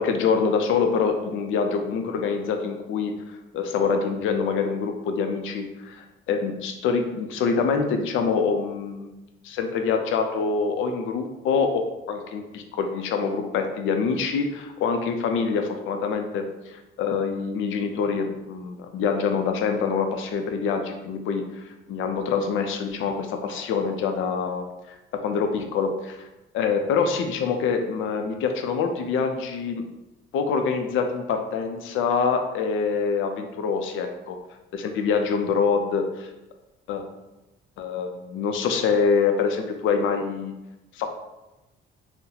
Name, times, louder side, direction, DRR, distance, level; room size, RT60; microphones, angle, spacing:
voice 1, 0.0-9.1 9.4-24.7 25.2-26.3 26.5-29.8 30.3-34.4 34.7-36.3 36.9-37.0 37.8-40.5 40.9-41.1, left 5 dB, 80° left, 5 dB, 0.5 m, -25 dB
2.8 x 2.1 x 3.8 m, 1.0 s
cardioid pair, 90°, 20 cm